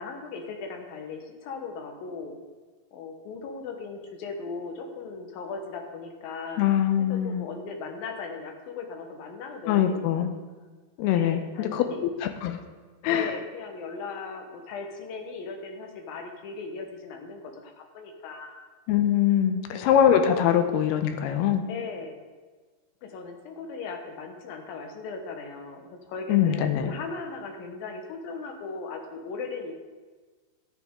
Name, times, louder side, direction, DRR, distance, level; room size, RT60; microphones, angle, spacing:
voice 1, 0.0-2.4 2.9-10.3 11.1-12.1 13.1-18.6 19.7-19.8 21.7-22.2 23.0-29.7, left 4 dB, 70° left, 4 dB, 2.7 m, -38 dB
voice 2, 6.6-7.5 9.7-10.3 11.0-12.6 13.0-13.3 18.9-21.6 26.3-26.9, left 9 dB, 85° left, 7 dB, 2.8 m, -23 dB
12.5 x 9.2 x 3.7 m, 1.4 s
omnidirectional pair, 4.6 m